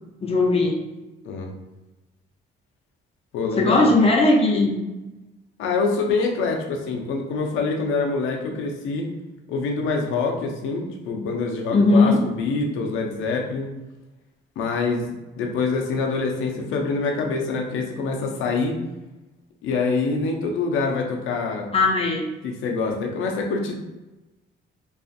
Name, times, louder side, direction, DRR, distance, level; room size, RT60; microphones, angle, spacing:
voice 1, 0.2-0.8 3.6-4.8 11.7-12.2 21.7-22.3, left 2 dB, 30° left, 0 dB, 0.6 m, -18 dB
voice 2, 3.3-3.9 5.6-9.1 9.5-13.7 14.6-15.1 15.4-18.8 19.6-21.7 22.4-23.8, left 4 dB, 90° left, 1 dB, 0.5 m, -25 dB
2.5 x 2.4 x 2.5 m, 1.1 s
cardioid pair, 90°, 20 cm